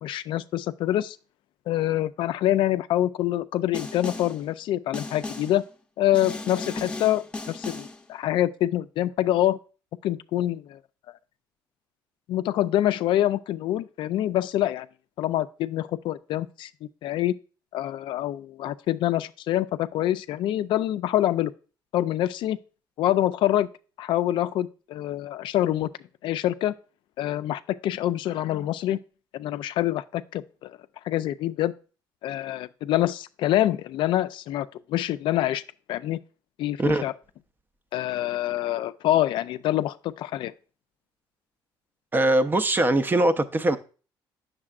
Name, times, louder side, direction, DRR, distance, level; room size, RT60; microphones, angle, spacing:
voice 1, 0.0-1.2 1.7-5.6 6.0-9.6 10.0-10.8 12.3-14.9 15.2-17.4 17.7-21.5 21.9-22.6 23.0-23.7 24.0-25.9 26.2-26.7 27.2-29.0 29.3-30.8 31.1-31.7 32.2-35.6 35.9-36.2 36.6-37.1 37.9-40.5, left 13 dB, 65° left, 0.3 m, -26 dB
Snare drum, 3.7-4.4 4.9-5.6 6.1-8.0, left 2 dB, 15° left, 0.8 m, -36 dB
voice 2, 42.1-43.8, right 1 dB, 20° right, 0.5 m, -21 dB
8.5 x 6.6 x 2.4 m
cardioid pair, 105°, 9 cm